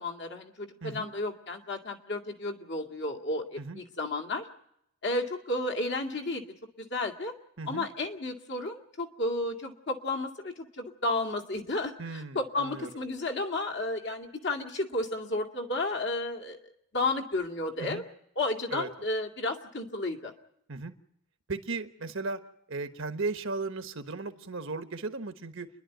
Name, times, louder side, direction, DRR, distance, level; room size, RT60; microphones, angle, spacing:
voice 1, 0.0-4.5 5.0-6.4 6.8-7.3 7.7-16.6 16.9-18.0 18.4-20.3, left 2 dB, 50° left, 3 dB, 2.1 m, -32 dB
voice 2, 0.8-1.1 3.6-3.8 7.6-7.9 12.0-12.9 17.8-18.0 18.7-18.9 20.7-20.9 21.5-22.4 22.7-25.7, right 3 dB, 60° right, 8 dB, 1.2 m, -36 dB
29.5 x 11.0 x 9.2 m, 0.77 s
head